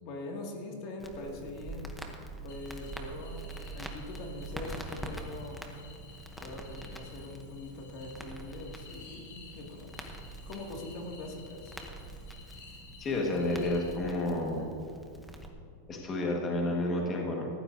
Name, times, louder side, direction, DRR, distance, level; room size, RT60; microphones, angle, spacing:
voice 1, 0.0-1.9 2.4-5.7 6.4-10.2 10.5-11.7, left 2 dB, 40° left, 0 dB, 2.1 m, -42 dB
Crackle, 1.0-15.5, right 2 dB, ahead, 0.8 m, -45 dB
sound 1, 2.5-14.4, left 4 dB, 80° left, 3.5 m, -55 dB
voice 2, 13.0-14.7 15.9-17.5, left 2 dB, 20° left, -1 dB, 1.5 m, -30 dB
19.5 x 14.5 x 2.7 m, 2.5 s
supercardioid pair, 170°, 0 cm